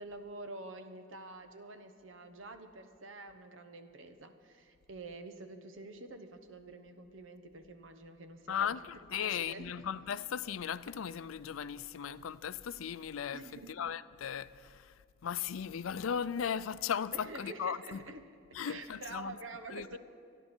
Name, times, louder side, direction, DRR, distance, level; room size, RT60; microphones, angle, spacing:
voice 1, 0.0-8.8 9.1-9.9 13.3-13.7 17.1-18.4 18.6-20.0, right 2 dB, 70° right, 1.2 m, -47 dB
voice 2, 8.5-13.4 13.7-14.9 15.2-18.0 18.5-19.3 19.7-20.0, left 8 dB, 90° left, 0.4 m, -37 dB
25.0 x 11.0 x 4.5 m
head